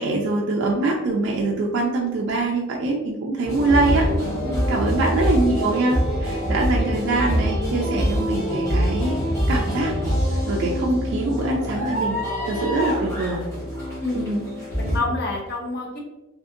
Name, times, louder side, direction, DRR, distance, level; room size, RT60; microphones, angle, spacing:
voice 1, 0.0-4.1 4.7-9.2 9.5-10.0 10.5-12.2 12.4-13.5 14.1-14.5, right 2 dB, 55° right, -1 dB, 0.3 m, -23 dB
sound 1, 3.4-15.0, equal, 15° left, 0.8 m, -25 dB
voice 2, 14.0-14.3 14.8-16.0, left 2 dB, 45° left, -2 dB, 0.6 m, -28 dB
2.6 x 2.4 x 2.4 m, 1.0 s
head